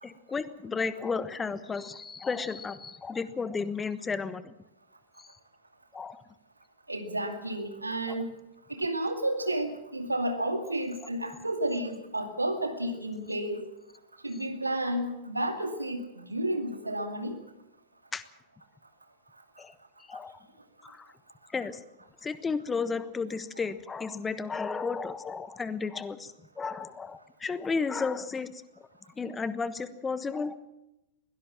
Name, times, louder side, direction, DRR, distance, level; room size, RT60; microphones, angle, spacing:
voice 1, 0.0-4.5 5.2-5.3 5.9-6.2 8.1-8.2 18.1-18.2 19.6-19.7 20.1-20.4 20.8-21.1 21.5-21.8 22.2-28.6 29.2-30.6, left 4 dB, 15° left, 15 dB, 1.2 m, -33 dB
voice 2, 6.9-8.3 8.7-13.6 14.2-17.4, right 1 dB, 85° right, 7 dB, 2.3 m, -31 dB
22.0 x 17.5 x 7.4 m, 0.89 s
figure-of-eight pair, 90°, 0 cm